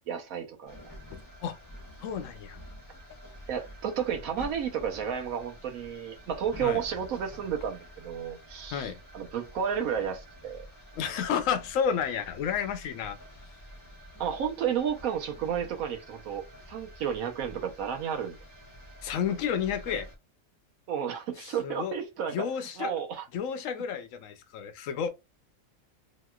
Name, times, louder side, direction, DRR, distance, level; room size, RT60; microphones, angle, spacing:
voice 1, 0.1-0.9 3.5-10.7 14.2-18.4 20.9-22.4 22.8-23.3, right 8 dB, 85° right, 1.1 m, -32 dB
sound 1, 0.7-20.1, equal, 20° left, 0.8 m, -48 dB
voice 2, 1.1-1.6 2.0-2.6 6.6-6.8 8.7-9.0 11.0-13.2 19.0-20.1 21.4-22.0 22.3-22.9 23.3-25.1, left 7 dB, 75° left, 0.9 m, -31 dB
2.9 x 2.9 x 2.3 m
omnidirectional pair, 1.4 m